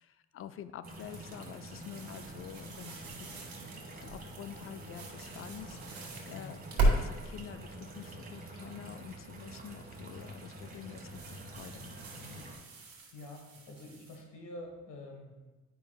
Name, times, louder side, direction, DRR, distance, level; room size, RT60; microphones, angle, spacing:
voice 1, 0.0-3.5 4.0-12.5, left 9 dB, 50° left, 12 dB, 0.4 m, -48 dB
sound 1, 0.8-12.6, right 1 dB, 30° right, 1.3 m, -47 dB
sound 2, 0.9-7.0 7.5-8.1 9.9-10.3 11.0-14.2, right 2 dB, 75° right, 1.8 m, -37 dB
voice 2, 13.1-15.3, left 1 dB, 80° left, 2 dB, 1.4 m, -47 dB
8.9 x 5.4 x 2.3 m, 1.2 s
cardioid pair, 90°, 30 cm